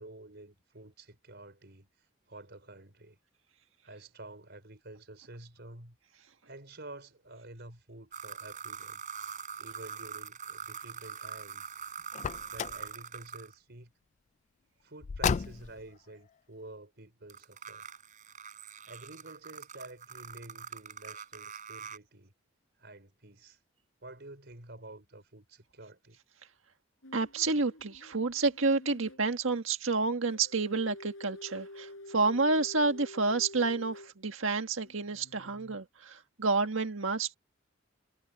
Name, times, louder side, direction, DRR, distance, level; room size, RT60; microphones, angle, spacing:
voice 1, 0.0-1.9 2.3-3.2 3.8-6.0 6.4-9.0 9.6-11.7 12.5-13.9 14.8-17.9 18.8-22.3 22.8-23.6 24.0-26.2, right 2 dB, 60° right, 5.0 m, -50 dB
sound 1, 8.1-13.5 17.3-22.0, right 7 dB, 40° right, 6.7 m, -43 dB
Car, 12.1-12.9 15.0-15.9, left 6 dB, 35° left, 0.3 m, -32 dB
sound 2, 27.0-29.2 30.3-34.1 34.8-35.8, left 1 dB, 85° left, 5.0 m, -49 dB
voice 2, 27.1-37.4, right 3 dB, 90° right, 1.6 m, -29 dB
head